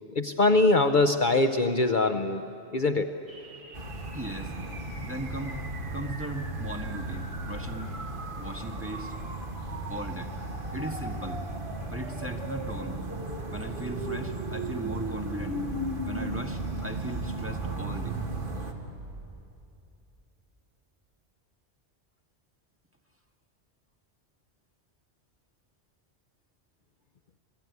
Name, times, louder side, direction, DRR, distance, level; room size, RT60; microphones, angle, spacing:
voice 1, 0.1-2.4 2.7-3.1, left 2 dB, 50° left, 8 dB, 0.9 m, -22 dB
sound 1, 3.3-19.6, right 2 dB, 70° right, 1.5 m, -40 dB
sound 2, 3.7-18.7, right 2 dB, 50° right, 2.1 m, -36 dB
voice 2, 4.1-4.5 5.0-5.6 5.9-7.9 8.4-9.1 9.9-10.3 10.7-11.4 11.9-13.0 13.5-15.6 16.0-18.2, right 1 dB, 10° right, 2 dB, 1.7 m, -38 dB
27.5 x 19.5 x 9.5 m, 2.7 s
omnidirectional pair, 1.1 m